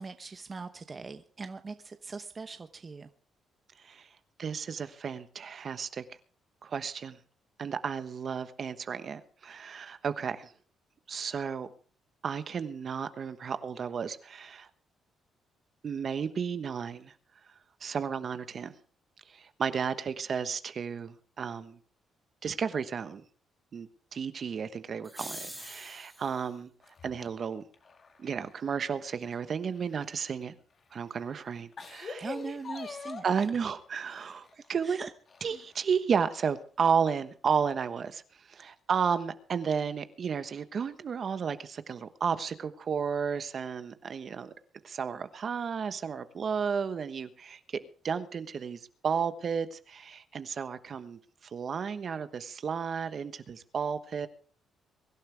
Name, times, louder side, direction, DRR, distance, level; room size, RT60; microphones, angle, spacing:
voice 1, 0.0-3.1 32.2-33.2 34.8-35.1, right 4 dB, 30° right, 8 dB, 0.9 m, -41 dB
voice 2, 4.4-6.0 6.6-7.2 7.6-10.5 11.1-11.7 12.2-14.7 15.8-17.1 17.8-18.8 19.3-21.8 22.4-23.2 23.7-26.7 27.0-27.6 28.2-30.5 30.9-32.3 33.2-35.0 35.4-38.2 38.5-44.5 44.8-51.2 51.5-54.3, right 6 dB, 50° right, 11 dB, 1.2 m, -33 dB
sound 1, 25.0-26.4, equal, ahead, 3.7 m, -43 dB
sound 2, 26.8-28.7 29.1-30.4 31.1-31.2 31.6-33.5 34.0-34.8 35.3-36.0 36.4-36.5 37.6-37.7, left 4 dB, 45° left, 2.0 m, -44 dB
23.0 x 11.5 x 3.5 m, 0.42 s
cardioid pair, 90°, 0 cm